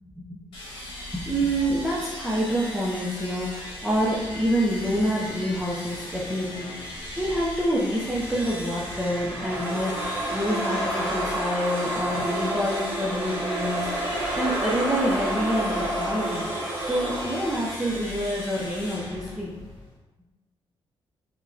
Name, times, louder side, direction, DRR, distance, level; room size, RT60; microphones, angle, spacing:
voice 1, 0.1-0.4 1.1-19.6, equal, 5° right, -6 dB, 0.4 m, -27 dB
sound 1, 0.5-20.0, left 1 dB, 65° left, 1.1 m, -38 dB
sound 2, 8.1-18.0, right 1 dB, 25° right, 0.8 m, -30 dB
4.6 x 2.1 x 2.6 m, 1.1 s
wide cardioid pair, 175°, 10 cm